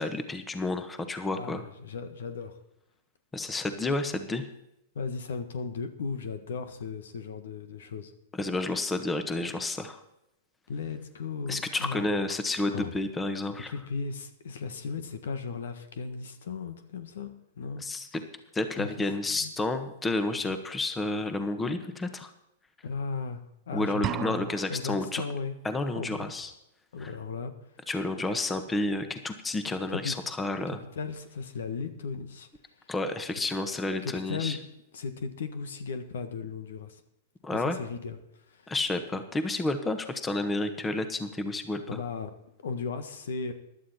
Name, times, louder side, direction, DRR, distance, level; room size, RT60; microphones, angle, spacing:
voice 1, 0.0-1.6 3.3-4.5 8.4-10.0 11.5-13.7 17.8-18.2 18.5-22.3 23.7-25.2 25.6-26.5 27.0-27.1 27.9-30.8 32.9-34.6 37.4-37.8 38.7-42.0, left 2 dB, 15° left, 9 dB, 1.4 m, -30 dB
voice 2, 1.3-2.6 4.9-8.1 10.7-12.1 12.7-12.9 13.5-17.3 17.6-17.8 18.8-18.9 19.3-19.5 22.8-25.5 25.9-26.5 26.9-27.5 29.9-30.2 30.9-32.5 32.8-32.9 34.0-34.7 34.9-37.0 37.5-38.2 38.5-38.7 39.1-39.2 41.9-42.3 42.6-43.5, left 5 dB, 75° left, 10 dB, 1.6 m, -36 dB
sound 1, 24.0-25.0, right 12 dB, 35° right, 0.5 m, -34 dB
15.5 x 11.5 x 4.4 m, 0.83 s
hypercardioid pair, 115°, 0 cm